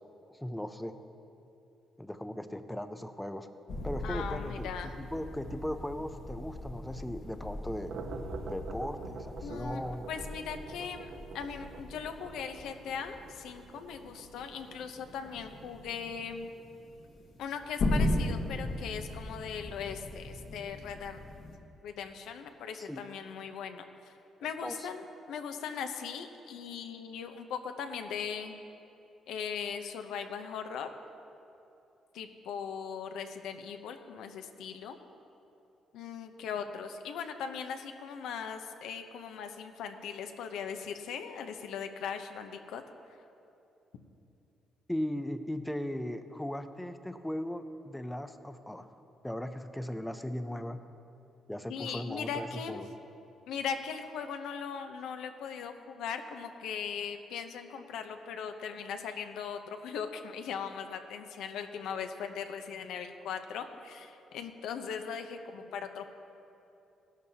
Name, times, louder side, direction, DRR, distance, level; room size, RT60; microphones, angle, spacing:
voice 1, 0.3-0.9 2.0-3.5 3.8-7.9 8.5-10.1 22.7-23.0 24.4-24.9 44.9-48.9 49.2-50.8 51.5-52.9, left 1 dB, 5° left, 9 dB, 0.5 m, -38 dB
sound 1, 3.7-21.6, left 1 dB, 60° left, 1.4 m, -38 dB
voice 2, 4.0-5.0 9.4-9.8 10.1-11.1 11.3-16.5 17.4-21.2 21.8-24.1 24.4-28.6 29.3-30.9 32.1-35.0 35.9-42.8 51.7-52.8 53.5-66.0, left 7 dB, 90° left, 7 dB, 0.8 m, -39 dB
sound 2, 7.6-16.6, right 5 dB, 70° right, 0.9 m, -47 dB
16.5 x 12.0 x 2.8 m, 2.8 s
cardioid pair, 135°, 0 cm